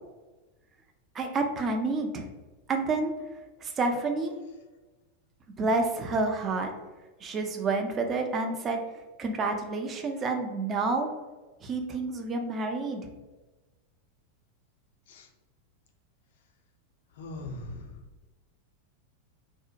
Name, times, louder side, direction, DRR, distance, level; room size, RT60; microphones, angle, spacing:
voice 1, 1.1-2.2 2.7-3.1 3.6-4.4 5.6-6.7 7.2-11.1 11.6-13.1, right 3 dB, 25° right, 4 dB, 0.3 m, -29 dB
voice 2, 17.2-18.0, left 2 dB, 55° left, 4 dB, 0.4 m, -40 dB
2.7 x 2.1 x 2.4 m, 1.2 s
figure-of-eight pair, 90°, 0 cm